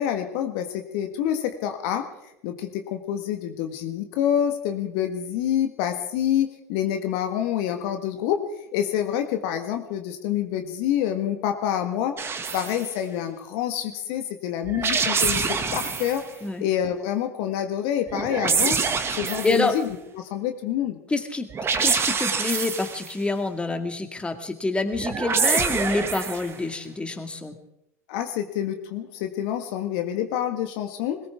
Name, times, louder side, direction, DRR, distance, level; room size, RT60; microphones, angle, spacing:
voice 1, 0.0-2.1 2.4-8.4 8.7-12.2 12.5-16.2 16.6-18.8 19.1-21.0 28.1-31.2, left 10 dB, 60° left, 6 dB, 1.5 m, -27 dB
sound 1, 12.2-12.8 14.6-16.2 18.1-19.8 21.5-23.1 24.9-26.5, right 5 dB, 30° right, 1.9 m, -25 dB
voice 2, 21.1-21.5 21.8-27.6, left 2 dB, 10° left, 6 dB, 2.0 m, -27 dB
21.0 x 18.5 x 3.6 m, 0.82 s
figure-of-eight pair, 75°, 9 cm